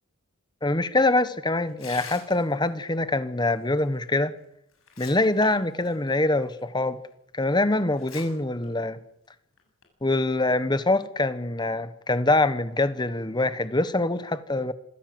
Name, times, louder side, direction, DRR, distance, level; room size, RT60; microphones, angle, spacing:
voice 1, 0.6-4.3 5.0-7.0 7.3-9.0 10.0-14.7, left 2 dB, 20° left, 1.3 m, -24 dB
Tearing, 1.7-2.7 4.1-4.2 4.7-5.4 5.8-5.9 6.6-6.7 7.9-8.2 8.6-8.7 9.6-9.8, left 6 dB, 80° left, 7.1 m, -43 dB
26.0 x 16.0 x 7.9 m
head